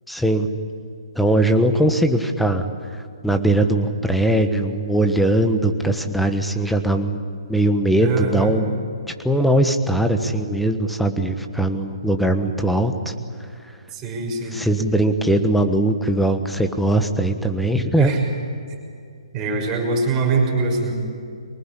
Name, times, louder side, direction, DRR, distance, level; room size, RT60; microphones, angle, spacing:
voice 1, 0.1-0.5 1.1-2.7 2.9-7.2 7.5-8.8 9.2-13.1 14.5-18.1, right 1 dB, ahead, 6 dB, 1.4 m, -20 dB
voice 2, 8.0-8.5 13.9-14.6 18.0-18.2 19.3-20.9, right 4 dB, 20° right, 0 dB, 6.1 m, -23 dB
24.0 x 20.0 x 10.0 m, 2.3 s
figure-of-eight pair, 135°, 3 cm